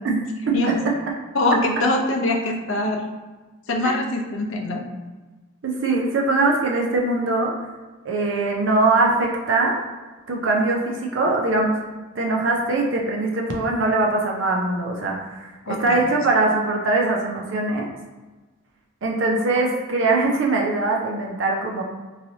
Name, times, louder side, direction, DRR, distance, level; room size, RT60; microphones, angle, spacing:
voice 1, 1.3-3.0 3.7-4.8 15.7-16.0, left 1 dB, 70° left, 2 dB, 0.5 m, -23 dB
voice 2, 5.6-7.5 8.0-9.8 10.3-11.8 12.1-17.9 19.0-21.8, right 2 dB, 65° right, -1 dB, 0.5 m, -22 dB
3.1 x 2.7 x 2.7 m, 1.2 s
head